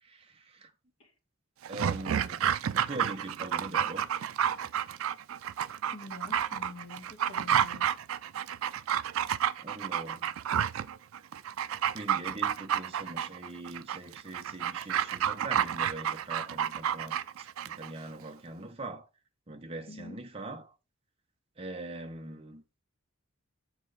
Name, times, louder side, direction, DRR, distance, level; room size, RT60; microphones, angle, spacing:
voice 1, 0.0-0.7 1.7-2.5 2.7-4.1 8.7-10.4 11.9-19.1 19.5-20.7 21.6-22.6, right 2 dB, 25° right, 0.8 m, -42 dB
Dog, 1.6-17.9 18.2-18.3, right 9 dB, 80° right, 0.4 m, -30 dB
voice 2, 5.9-8.0 13.0-13.2 13.9-14.0 19.9-20.2, left 2 dB, 80° left, 1.5 m, -47 dB
7.1 x 3.9 x 4.0 m
head